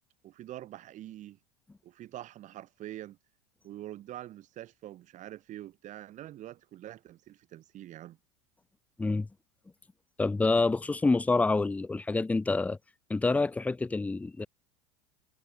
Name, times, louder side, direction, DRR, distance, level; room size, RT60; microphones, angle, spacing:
voice 1, 0.2-1.4 1.8-3.2 3.6-8.2, right 13 dB, 45° right, 2.0 m, -45 dB
voice 2, 10.2-12.8 13.1-14.5, left 3 dB, 10° left, 0.5 m, -27 dB
hypercardioid pair, 85°, 18 cm